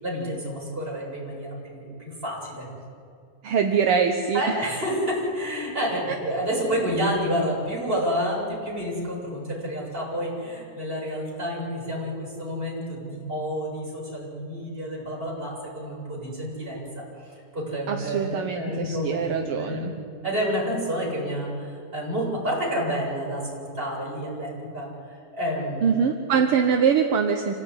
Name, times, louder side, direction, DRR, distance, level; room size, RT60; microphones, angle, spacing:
voice 1, 0.0-2.7 4.3-20.0 20.2-24.9 25.3-25.9 26.2-26.4, equal, 15° right, -4 dB, 8.1 m, -29 dB
voice 2, 3.4-4.4 6.1-6.2 17.9-19.9 25.8-27.5, right 6 dB, 55° right, 5 dB, 1.7 m, -23 dB
27.0 x 17.0 x 10.0 m, 2.4 s
omnidirectional pair, 3.7 m